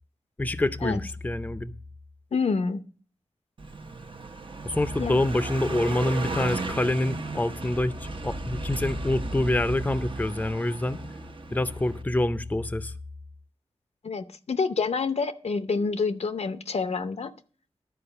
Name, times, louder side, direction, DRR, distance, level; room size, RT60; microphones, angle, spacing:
voice 1, 0.4-1.7 4.7-7.9 8.2-11.0 11.5-12.9, left 1 dB, 15° left, 0.5 m, -26 dB
voice 2, 2.3-2.8 5.0-5.2 14.0-17.3, left 4 dB, 85° left, 0.7 m, -27 dB
Car passing by, 3.6-12.0, right 3 dB, 50° right, 0.8 m, -35 dB
12.0 x 4.7 x 6.9 m
wide cardioid pair, 95°, 11 cm